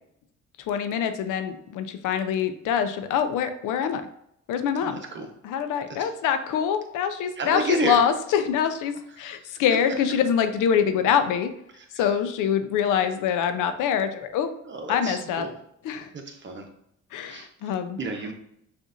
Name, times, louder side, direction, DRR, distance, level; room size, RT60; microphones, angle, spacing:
voice 1, 0.7-4.0 4.5-5.0 5.4-11.5 12.0-14.5 14.9-15.5 15.8-16.1 17.1-18.0, left 8 dB, 85° left, 9 dB, 0.5 m, -25 dB
voice 2, 4.8-5.3 5.9-6.0 7.4-8.0 9.2-9.5 11.8-12.0 14.6-15.5 16.1-16.7 17.3-17.7 18.0-18.3, right 3 dB, 40° right, 2 dB, 0.9 m, -32 dB
6.1 x 2.6 x 2.5 m, 0.76 s
cardioid pair, 90°, 30 cm